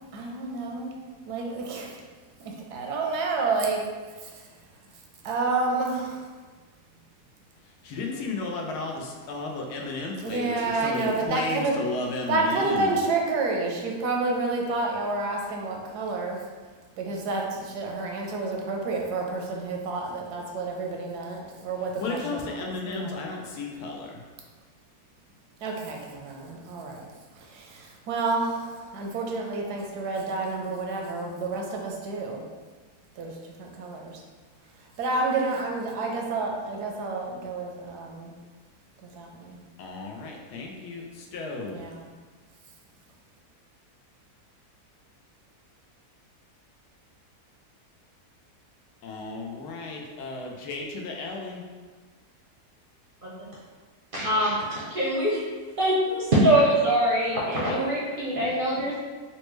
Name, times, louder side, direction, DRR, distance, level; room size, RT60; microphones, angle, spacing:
voice 1, 0.1-0.9 1.3-1.9 2.4-3.8 5.2-6.1 10.2-11.7 12.3-16.4 17.0-22.2 22.6-23.2 25.6-27.1 28.1-28.6 28.9-32.4 33.2-33.3 33.6-34.1 35.0-38.3 39.2-39.6 41.7-42.0, right 3 dB, 85° right, 0 dB, 1.2 m, -29 dB
voice 2, 7.8-12.9 22.0-24.2 39.8-41.8 49.0-51.6, left 3 dB, 90° left, 1 dB, 1.2 m, -34 dB
voice 3, 54.1-54.6 54.9-55.4 55.8-58.9, right 1 dB, 55° right, -6 dB, 0.6 m, -23 dB
4.1 x 2.2 x 3.0 m, 1.4 s
omnidirectional pair, 1.7 m